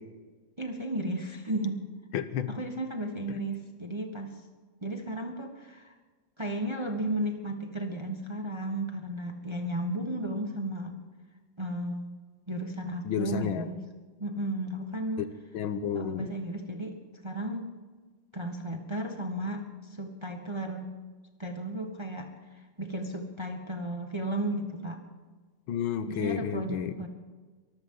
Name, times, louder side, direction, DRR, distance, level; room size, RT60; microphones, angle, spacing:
voice 1, 0.6-1.9 2.5-4.4 4.8-5.9 6.4-11.0 11.6-12.1 12.5-13.8 14.2-15.3 15.9-17.0 17.2-17.8 18.3-20.9 21.4-22.3 22.8-25.0 26.1-27.1, right 1 dB, 15° right, 4 dB, 1.1 m, -34 dB
voice 2, 2.1-2.5 13.0-13.7 15.2-15.3 15.5-16.3 25.7-26.9, left 8 dB, 75° left, 11 dB, 1.6 m, -31 dB
23.5 x 14.5 x 3.9 m, 1.4 s
omnidirectional pair, 2.3 m